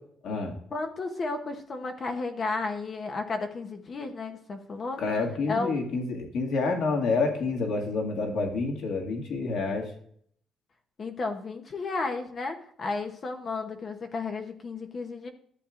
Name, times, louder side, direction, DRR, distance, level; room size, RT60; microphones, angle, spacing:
voice 1, 0.7-5.0 5.5-5.7 11.0-15.3, left 3 dB, 30° left, 5 dB, 0.8 m, -33 dB
voice 2, 5.0-9.9, left 3 dB, 65° left, 2 dB, 2.1 m, -28 dB
13.0 x 8.5 x 2.5 m, 0.64 s
cardioid pair, 175°, 0 cm